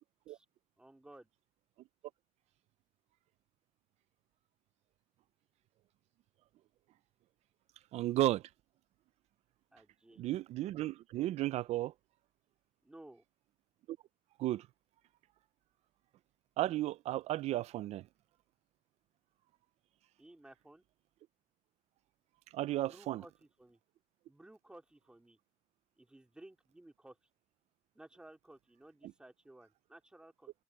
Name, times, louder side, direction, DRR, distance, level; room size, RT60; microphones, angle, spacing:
voice 1, 0.8-1.3 9.7-10.2 12.8-13.2 20.2-20.8 22.8-23.8 24.3-25.4 26.0-27.2 27.9-30.5, right 1 dB, 10° right, 2.5 m, -57 dB
voice 2, 7.9-8.5 10.2-11.9 13.9-14.0 14.4-14.7 16.6-18.1 22.5-23.2, right 15 dB, 85° right, 0.4 m, -34 dB
cardioid pair, 160°, 11 cm